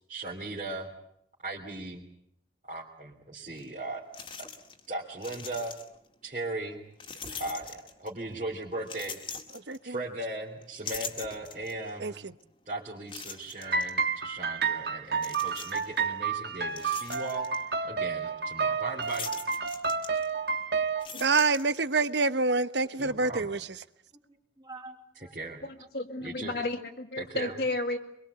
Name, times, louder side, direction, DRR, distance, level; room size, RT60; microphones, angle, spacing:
voice 1, 0.1-0.9 1.4-2.0 2.6-4.0 4.4-4.5 4.9-5.8 6.2-6.8 7.4-9.4 9.8-12.2 12.7-17.5 17.8-19.3 23.0-23.5 25.3-25.6 26.2-26.5 27.2-27.5, right 2 dB, 40° right, 3.4 m, -38 dB
sound 1, 3.6-3.7 4.1-4.9 5.1-6.1 7.0-8.2 8.8-10.2 10.6-11.9 12.4-12.5 13.1-13.9 15.2-16.0 16.5-17.6 19.0-20.5 20.9-22.1, left 5 dB, 30° left, 2.2 m, -42 dB
voice 2, 12.0-12.3 21.1-23.6, right 3 dB, 80° right, 1.1 m, -27 dB
sound 2, 13.7-21.1, right 5 dB, 60° right, 1.7 m, -30 dB
voice 3, 24.3-25.4 26.2-26.7 27.4-27.8, right 3 dB, 25° right, 3.3 m, -49 dB
voice 4, 25.6-28.0, left 2 dB, 60° left, 2.3 m, -32 dB
24.5 x 22.5 x 8.2 m
head